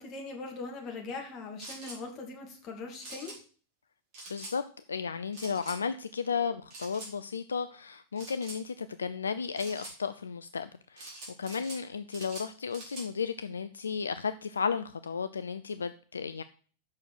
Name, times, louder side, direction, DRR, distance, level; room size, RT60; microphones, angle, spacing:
voice 1, 0.0-3.3, left 3 dB, 35° left, 2.7 m, -41 dB
sound 1, 1.6-2.0 3.0-3.4 4.1-4.6 5.3-5.8 6.7-7.1 8.2-8.6 9.6-10.0 11.0-11.8 12.1-13.1, right 2 dB, 40° right, 4.4 m, -44 dB
voice 2, 4.3-4.6 4.9-16.4, left 6 dB, 70° left, 0.4 m, -34 dB
7.5 x 6.2 x 6.2 m
figure-of-eight pair, 90°, 0 cm